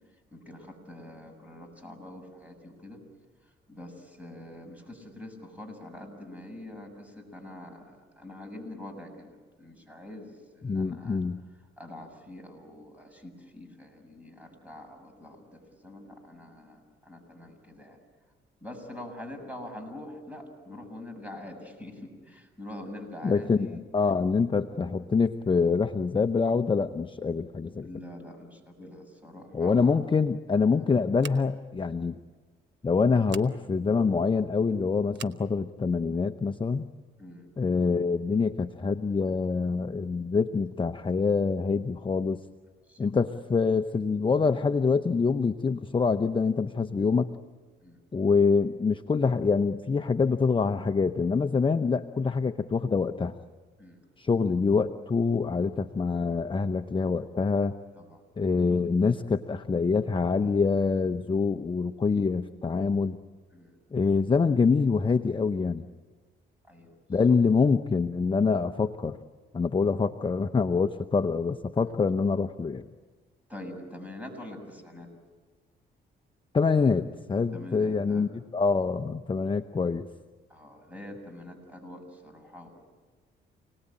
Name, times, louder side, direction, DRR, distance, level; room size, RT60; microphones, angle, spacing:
voice 1, 0.3-3.0 3.7-11.2 11.8-18.0 18.6-23.8 27.8-30.0 30.8-30.9 37.2-37.4 42.9-43.1 47.8-48.0 53.8-54.0 57.9-58.2 63.5-63.8 66.7-66.9 67.3-67.4 71.8-71.9 73.5-75.1 77.5-78.3 80.5-82.7, left 1 dB, 5° right, 5 dB, 7.4 m, -44 dB
voice 2, 10.6-11.4 23.2-27.9 29.5-32.2 32.8-36.8 37.6-42.4 43.0-47.3 48.1-53.3 54.2-57.7 58.4-63.2 63.9-65.8 67.1-69.2 69.5-72.8 76.5-80.1, left 4 dB, 25° left, 7 dB, 0.9 m, -25 dB
Scissors, 31.2-31.7 33.2-33.5 35.1-35.4, right 9 dB, 65° right, 1.1 m, -43 dB
29.5 x 19.5 x 8.9 m, 1.4 s
cardioid pair, 90°, 20 cm